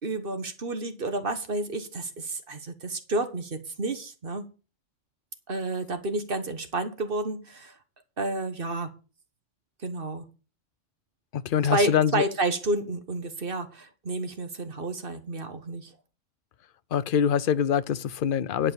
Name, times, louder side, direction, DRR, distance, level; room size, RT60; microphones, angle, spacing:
voice 1, 0.0-4.4 5.5-7.7 8.2-8.9 9.8-10.3 11.7-15.9, right 2 dB, 50° right, 1.4 m, -30 dB
voice 2, 11.3-12.2 16.9-18.7, left 8 dB, 55° left, 0.7 m, -24 dB
11.0 x 4.7 x 7.5 m
omnidirectional pair, 1.3 m